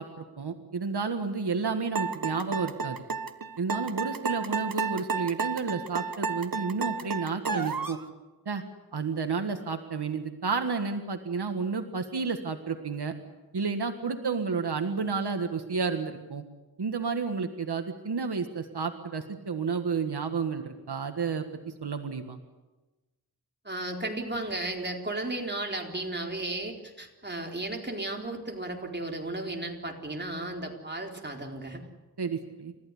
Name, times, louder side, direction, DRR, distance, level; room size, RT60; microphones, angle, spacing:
voice 1, 0.0-3.0 3.6-8.0 8.4-8.6 8.9-13.1 13.5-16.4 16.8-21.4 21.8-22.4 32.2-32.7, right 5 dB, 85° right, 7 dB, 1.7 m, -31 dB
sound 1, 1.9-8.0, right 4 dB, 60° right, 1.5 m, -31 dB
voice 2, 23.6-31.8, right 2 dB, 25° right, 1 dB, 4.1 m, -34 dB
30.0 x 14.5 x 9.9 m, 1.2 s
wide cardioid pair, 75°, 38 cm